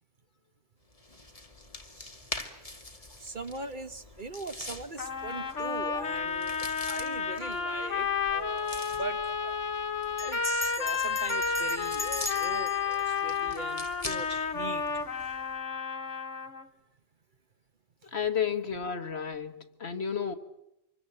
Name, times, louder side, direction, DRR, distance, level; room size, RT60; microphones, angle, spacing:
sound 1, 0.9-15.6, left 2 dB, 30° left, 2.4 m, -45 dB
voice 1, 3.2-9.7 10.2-15.0, right 3 dB, 45° right, 1.3 m, -41 dB
sound 2, 5.0-16.7, left 5 dB, 85° left, 1.9 m, -31 dB
Bell, 8.0-8.4 8.7-8.8 9.0-9.4 10.2-14.3, left 2 dB, 15° left, 1.6 m, -40 dB
voice 2, 18.1-20.3, left 7 dB, 60° left, 1.8 m, -32 dB
26.5 x 23.0 x 8.0 m
omnidirectional pair, 1.2 m